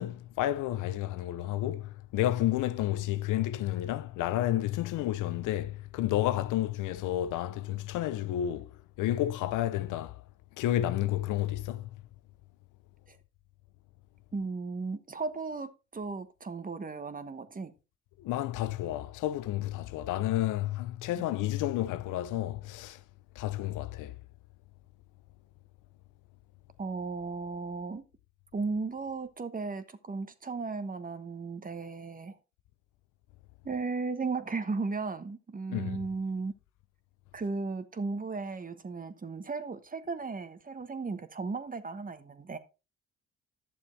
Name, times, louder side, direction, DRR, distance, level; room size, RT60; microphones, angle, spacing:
voice 1, 0.0-8.7 9.0-10.2 10.6-11.9 18.2-23.0 23.4-24.1 35.7-36.0, left 13 dB, 90° left, 0.7 m, -31 dB
voice 2, 14.3-17.7 21.2-21.3 26.8-28.0 28.5-32.4 33.6-36.5 37.3-42.6, right 4 dB, 30° right, 1.2 m, -35 dB
11.0 x 7.1 x 3.3 m
cardioid pair, 90°, 30 cm